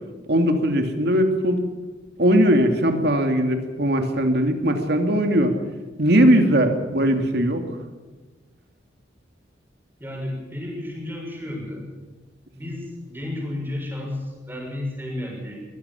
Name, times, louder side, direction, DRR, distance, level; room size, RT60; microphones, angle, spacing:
voice 1, 0.3-1.6 2.2-5.5 6.0-7.6, equal, 60° right, 5 dB, 2.6 m, -19 dB
voice 2, 10.0-11.9 12.5-15.6, left 1 dB, 10° right, -1 dB, 6.8 m, -32 dB
22.5 x 16.0 x 7.2 m, 1.3 s
head